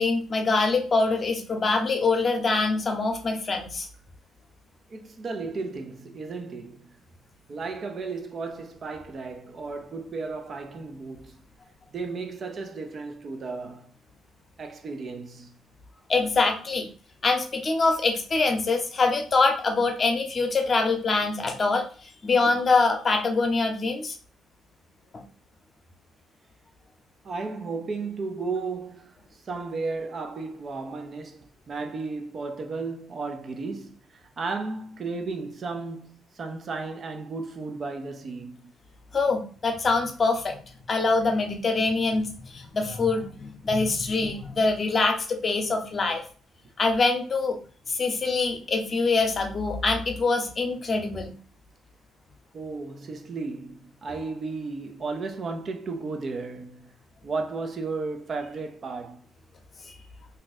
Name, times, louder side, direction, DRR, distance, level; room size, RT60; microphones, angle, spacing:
voice 1, 0.0-3.9 16.1-16.9 17.2-24.1 39.1-40.6 40.9-46.2 46.8-47.6 47.9-51.4 59.9-60.0, left 3 dB, 40° left, 0.7 m, -24 dB
voice 2, 4.9-7.0 7.5-11.4 11.9-13.9 14.6-15.6 27.2-38.7 52.5-56.9 57.2-59.2, right 4 dB, 50° right, 0.5 m, -34 dB
2.6 x 2.3 x 4.0 m
cardioid pair, 90°, 0 cm